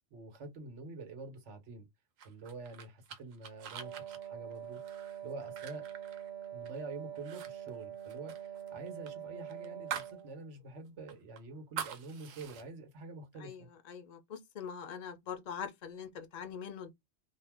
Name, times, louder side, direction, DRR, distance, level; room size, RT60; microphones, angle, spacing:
voice 1, 0.1-1.9 2.2-5.0 5.2-5.8 6.5-13.7, right 3 dB, 65° right, 1.1 m, -47 dB
sound 1, 2.2-6.8 7.1-7.5 7.7-10.2 10.5-10.6 11.1-12.6, right 8 dB, 90° right, 1.0 m, -45 dB
Wind instrument woodwind instrument, 3.8-10.5, right 10 dB, 40° right, 0.8 m, -45 dB
voice 2, 13.4-16.9, left 7 dB, 50° left, 0.5 m, -43 dB
2.5 x 2.1 x 3.3 m
omnidirectional pair, 1.3 m